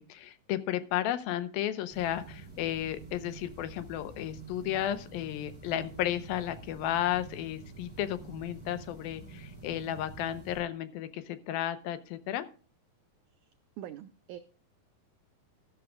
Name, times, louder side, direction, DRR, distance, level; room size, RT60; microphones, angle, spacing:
voice 1, 0.0-12.4, left 12 dB, 85° left, 12 dB, 2.7 m, -33 dB
sound 1, 1.9-10.6, right 4 dB, 5° right, 4.4 m, -47 dB
voice 2, 13.8-14.4, right 12 dB, 85° right, 9 dB, 1.7 m, -43 dB
13.5 x 12.5 x 2.4 m, 0.38 s
omnidirectional pair, 4.2 m